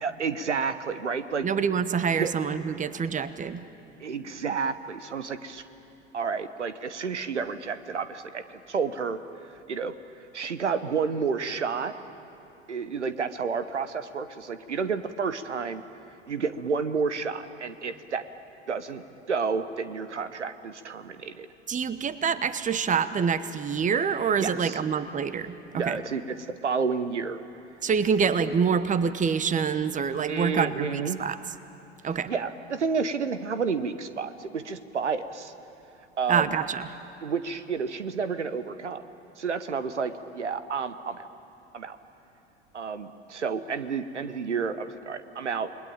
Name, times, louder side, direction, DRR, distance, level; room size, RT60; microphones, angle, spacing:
voice 1, 0.0-1.5 2.2-2.3 4.0-5.6 6.1-9.2 9.7-9.9 10.3-11.9 12.7-15.8 16.3-18.2 18.7-21.5 24.4-24.8 25.7-26.4 26.6-27.4 30.3-31.2 32.3-35.5 36.2-36.6 37.2-39.0 39.4-41.3 41.7-42.0 42.7-45.7, right 5 dB, 85° right, 12 dB, 1.0 m, -30 dB
voice 2, 1.4-3.6 21.7-26.0 27.8-31.4 32.0-32.3 36.3-36.9, right 6 dB, 20° right, 13 dB, 1.1 m, -26 dB
29.0 x 20.5 x 8.9 m, 3.0 s
figure-of-eight pair, 75°, 34 cm